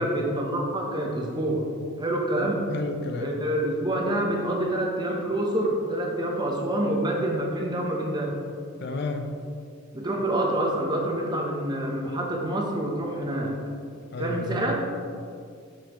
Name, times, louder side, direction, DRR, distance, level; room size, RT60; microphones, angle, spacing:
voice 1, 0.0-1.7 2.0-2.7 3.2-8.4 9.9-13.6 14.2-14.7, right 1 dB, 20° right, 0 dB, 0.8 m, -27 dB
voice 2, 2.3-3.3 8.8-9.3 14.1-14.7, left 3 dB, 50° left, 5 dB, 0.5 m, -32 dB
8.0 x 6.1 x 3.0 m, 2.3 s
head